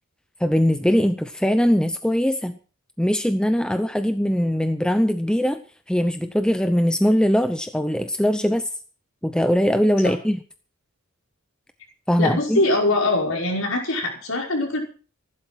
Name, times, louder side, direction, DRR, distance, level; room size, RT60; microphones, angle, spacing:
voice 1, 0.4-2.6 3.0-5.6 5.9-8.7 9.2-10.4 12.1-12.6, equal, 5° left, 9 dB, 0.7 m, -21 dB
voice 2, 12.2-14.8, left 2 dB, 70° left, 1 dB, 5.4 m, -22 dB
15.0 x 12.0 x 6.2 m, 0.40 s
head